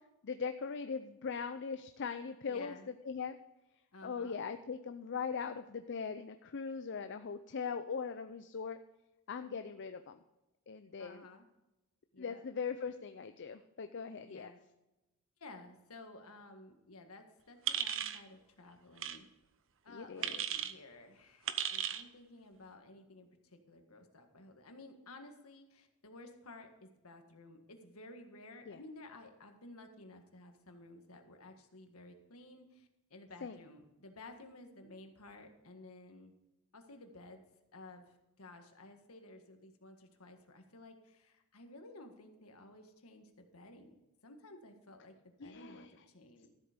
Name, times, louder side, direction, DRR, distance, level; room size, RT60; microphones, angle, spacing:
voice 1, 0.2-2.7 3.1-3.4 4.0-8.8 9.3-10.2 10.7-11.3 12.2-14.5 19.9-20.4 28.7-28.8 33.4-33.6 45.4-45.9, left 5 dB, 55° left, 9 dB, 0.5 m, -40 dB
voice 2, 2.5-2.9 3.9-4.4 11.0-11.4 12.1-12.4 14.2-14.6 15.4-19.3 19.8-36.3 36.7-37.4 37.7-43.9 44.2-46.5, left 2 dB, 70° left, 5 dB, 1.7 m, -54 dB
sound 1, 17.7-18.2 19.0-19.2 20.2-20.7 21.5-22.0, right 9 dB, 60° right, 0.7 m, -35 dB
13.5 x 7.9 x 5.1 m, 0.97 s
head